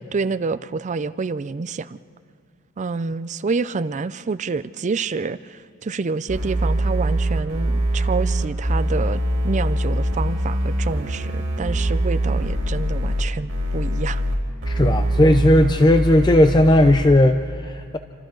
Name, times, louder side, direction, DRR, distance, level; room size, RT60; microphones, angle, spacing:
voice 1, 0.0-2.0 2.8-14.2, right 4 dB, 35° right, 15 dB, 0.4 m, -28 dB
sound 1, 6.3-13.2 13.5-14.4 14.6-17.1, right 1 dB, 65° right, 4.1 m, -23 dB
voice 2, 14.7-18.0, left 1 dB, 20° left, 8 dB, 0.5 m, -16 dB
27.5 x 26.0 x 3.9 m, 2.2 s
head